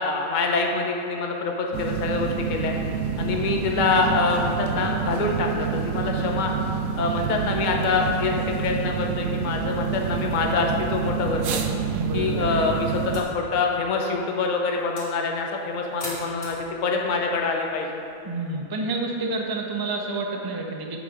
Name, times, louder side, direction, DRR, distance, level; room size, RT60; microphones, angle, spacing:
voice 1, 0.0-2.7 3.2-6.5 7.0-11.6 12.1-18.0, left 4 dB, 40° left, 1 dB, 0.8 m, -25 dB
sound 1, 1.7-13.2, right 6 dB, 80° right, 1.1 m, -28 dB
voice 2, 11.9-12.8 18.2-21.0, right 3 dB, 25° right, 1 dB, 0.4 m, -29 dB
sound 2, 13.1-18.6, left 1 dB, 60° left, 2.2 m, -43 dB
8.2 x 5.1 x 4.9 m, 2.7 s
omnidirectional pair, 1.5 m